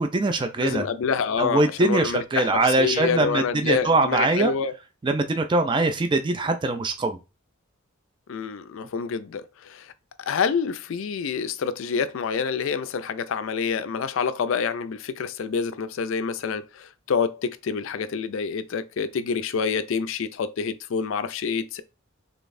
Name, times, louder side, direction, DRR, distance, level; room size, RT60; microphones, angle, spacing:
voice 1, 0.0-0.8 1.4-4.5 5.0-7.2, right 2 dB, 20° right, 0.3 m, -22 dB
voice 2, 0.6-4.8 8.3-9.9 10.2-21.8, left 6 dB, 65° left, 0.4 m, -27 dB
3.8 x 3.4 x 2.5 m
head